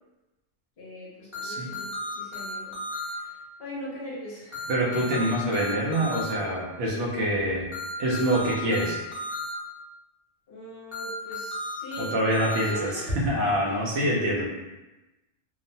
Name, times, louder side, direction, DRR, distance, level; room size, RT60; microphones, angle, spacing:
voice 1, 0.8-4.7 10.5-12.3 12.5-13.2 13.6-13.9, equal, 55° left, -6 dB, 0.9 m, -41 dB
sound 1, 1.3-3.1 4.5-6.3 7.7-9.5 10.9-12.7, left 1 dB, 30° left, 0.6 m, -34 dB
voice 2, 4.7-7.7 8.0-9.0 12.0-12.9 13.2-14.5, right 1 dB, 65° right, -4 dB, 0.9 m, -25 dB
2.8 x 2.0 x 2.6 m, 1.0 s
omnidirectional pair, 1.3 m